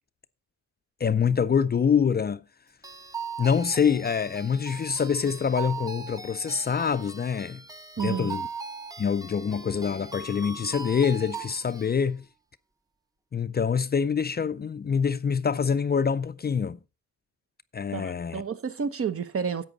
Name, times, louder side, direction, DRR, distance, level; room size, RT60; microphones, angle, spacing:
voice 1, 1.0-2.4 3.4-7.6 8.0-8.5 9.0-12.3 13.3-16.8 17.7-18.4, left 6 dB, 35° left, 0.4 m, -25 dB
sound 1, 2.8-11.9, right 4 dB, 10° right, 0.8 m, -39 dB
voice 2, 8.0-8.3 17.9-19.6, right 6 dB, 45° right, 0.9 m, -30 dB
11.0 x 8.0 x 3.9 m
cardioid pair, 100°, 30 cm